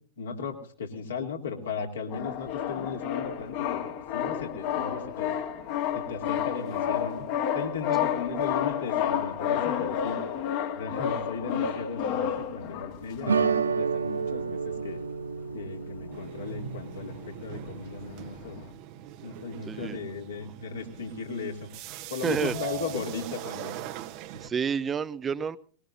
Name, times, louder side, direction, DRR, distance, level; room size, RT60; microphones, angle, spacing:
voice 1, 0.2-3.8 4.1-5.4 5.9-7.2 7.5-10.2 10.8-15.0 15.5-18.6 19.2-21.7 22.1-23.7 24.3-24.4, left 5 dB, 65° left, 1 dB, 2.9 m, -36 dB
sound 1, 2.1-13.8 14.4-14.5 14.7-14.9 15.3-16.7 16.9-18.7, left 9 dB, 45° left, 1.9 m, -31 dB
sound 2, 13.3-18.1, right 5 dB, 75° right, 0.7 m, -31 dB
sound 3, 16.1-24.5, right 13 dB, 45° right, 1.0 m, -41 dB
voice 2, 19.7-20.0 20.4-20.5 22.2-22.5 24.4-25.6, right 7 dB, 20° right, 15 dB, 0.6 m, -29 dB
21.5 x 20.5 x 2.7 m, 0.41 s
figure-of-eight pair, 90°, 0 cm